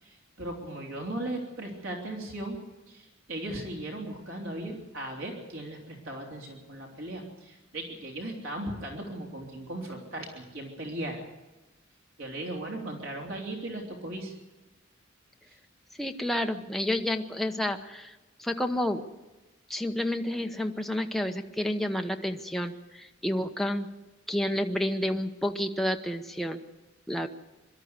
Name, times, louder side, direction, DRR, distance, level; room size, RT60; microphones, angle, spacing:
voice 1, 0.0-2.6 2.9-11.2 12.2-14.3, right 1 dB, 80° right, 1 dB, 3.4 m, -37 dB
voice 2, 16.0-19.0 19.7-23.9 24.3-26.6 27.1-27.3, left 1 dB, ahead, 4 dB, 0.9 m, -30 dB
22.5 x 12.5 x 9.6 m, 1.1 s
head